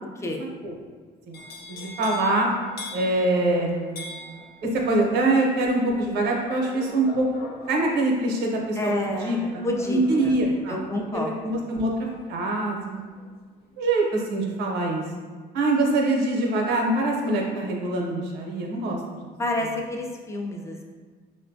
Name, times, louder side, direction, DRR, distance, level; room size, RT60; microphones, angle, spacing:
sound 1, 1.3-13.3 13.6-14.1, left 2 dB, 70° left, 0.6 m, -43 dB
voice 1, 1.7-2.5 2.9-4.0 4.6-7.2 7.7-10.8 11.1-11.9 12.3-13.0 13.8-15.0 15.5-19.0, right 2 dB, 80° right, 0 dB, 0.8 m, -24 dB
voice 2, 8.8-10.3 10.7-11.6 19.4-20.8, left 1 dB, 15° left, 1 dB, 0.5 m, -29 dB
4.9 x 2.2 x 2.6 m, 1.5 s
cardioid pair, 110°, 17 cm